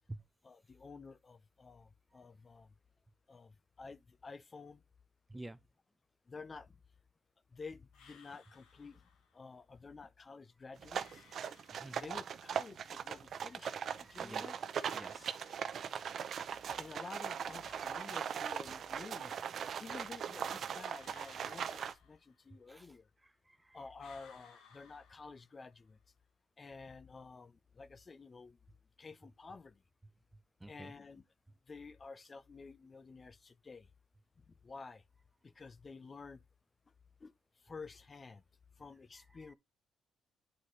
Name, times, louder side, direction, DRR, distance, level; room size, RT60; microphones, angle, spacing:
voice 1, 0.4-2.7 3.3-4.8 6.3-6.7 7.5-9.0 9.3-11.2 12.0-13.7 14.1-14.6 16.8-19.5 19.8-23.1 23.7-26.0 26.6-28.6 29.0-29.8 30.7-31.2 31.7-33.9 34.6-35.0 35.4-36.4 37.2-37.3 37.6-38.4 38.8-39.5, left 4 dB, 35° left, 0.6 m, -51 dB
sound 1, 7.9-9.4 10.9-12.4 14.8-16.3 17.6-19.1 21.0-22.7 24.0-25.8, left 6 dB, 85° left, 1.5 m, -63 dB
sound 2, 10.8-21.9, right 8 dB, 60° right, 0.6 m, -40 dB
voice 2, 11.7-12.1 13.5-14.5 14.9-15.3 22.7-22.9 23.2-23.8 30.6-30.9 39.3-39.5, right 1 dB, 10° right, 0.5 m, -51 dB
9.8 x 4.1 x 3.1 m
cardioid pair, 90°, 0 cm